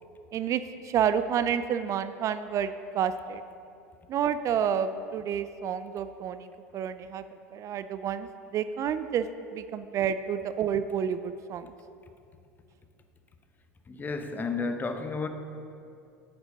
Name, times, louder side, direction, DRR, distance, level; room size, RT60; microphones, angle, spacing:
voice 1, 0.3-3.4 4.1-7.2 7.5-9.3 9.5-11.7, right 8 dB, 40° right, 0.4 m, -29 dB
voice 2, 13.9-15.3, left 4 dB, 25° left, 0.9 m, -32 dB
8.8 x 7.9 x 5.4 m
hypercardioid pair, 75°, 8 cm